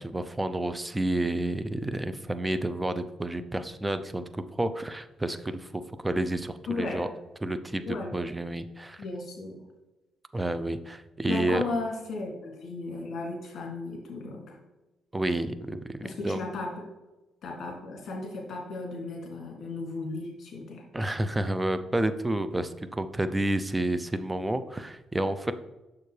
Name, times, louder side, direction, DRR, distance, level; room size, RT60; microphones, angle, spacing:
voice 1, 0.0-7.1 7.4-7.8 8.1-9.0 10.3-11.6 15.1-16.0 16.2-16.4 20.9-25.5, right 1 dB, 15° right, 11 dB, 0.6 m, -30 dB
voice 2, 6.7-7.1 7.8-8.3 9.0-9.6 11.3-14.6 16.0-16.9 17.4-20.9, left 3 dB, 60° left, 0 dB, 2.4 m, -35 dB
6.8 x 6.7 x 3.3 m, 1.1 s
cardioid pair, 90°, 0 cm